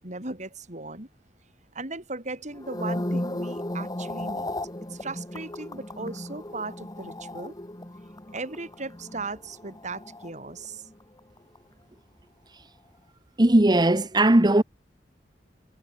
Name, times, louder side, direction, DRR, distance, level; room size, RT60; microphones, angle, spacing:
voice 1, 0.0-1.1 1.7-4.6 4.9-7.6 8.3-10.9, right 3 dB, 45° right, 6.2 m, -37 dB
sound 1, 2.5-10.9 11.2-11.6, left 1 dB, 20° left, 2.1 m, -35 dB
voice 2, 13.4-14.6, right 1 dB, 25° right, 1.1 m, -18 dB
head